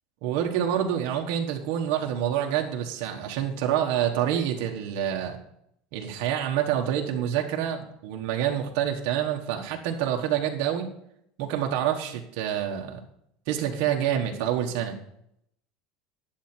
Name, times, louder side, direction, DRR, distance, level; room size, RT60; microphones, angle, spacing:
voice 1, 0.2-5.4 5.9-10.9 11.4-13.0 13.5-15.0, right 10 dB, 65° right, 1 dB, 1.3 m, -27 dB
10.5 x 7.8 x 4.4 m, 0.74 s
cardioid pair, 145°, 0 cm